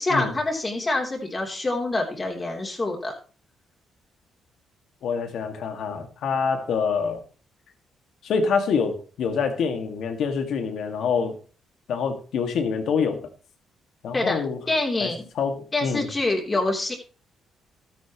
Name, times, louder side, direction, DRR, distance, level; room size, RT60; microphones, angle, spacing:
voice 1, 0.0-3.1 14.1-14.4 14.7-15.2 15.7-16.9, left 2 dB, 25° left, 3.3 m, -26 dB
voice 2, 5.0-7.2 8.2-11.4 11.9-13.3 14.0-14.6 15.0-15.1 15.4-16.1, left 5 dB, 70° left, 2.0 m, -26 dB
13.0 x 10.0 x 3.1 m
cardioid pair, 90°, 0 cm